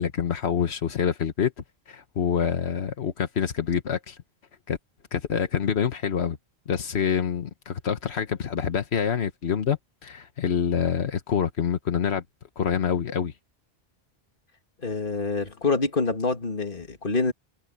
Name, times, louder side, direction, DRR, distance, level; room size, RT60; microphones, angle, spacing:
voice 1, 0.0-1.5 1.9-4.2 4.7-4.8 5.1-6.4 6.7-12.2 12.6-13.3 15.4-15.5, left 7 dB, 85° left, 1.3 m, -26 dB
voice 2, 14.8-17.3, left 3 dB, 55° left, 2.4 m, -26 dB
omnidirectional pair, 1.1 m